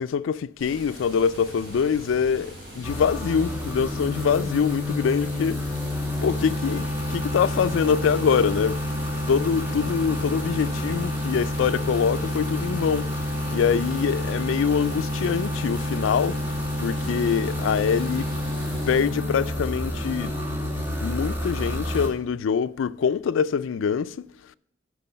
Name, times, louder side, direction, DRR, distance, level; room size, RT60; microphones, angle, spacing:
voice 1, 0.0-5.6 6.2-8.8 9.3-13.3 13.5-16.4 16.8-18.3 18.9-20.3 21.0-24.3, left 6 dB, 90° left, 0.3 m, -24 dB
Water, 0.6-19.0, equal, 55° right, 4.2 m, -42 dB
sound 1, 2.8-22.1, left 1 dB, 10° right, 1.7 m, -29 dB
8.4 x 6.1 x 5.5 m
head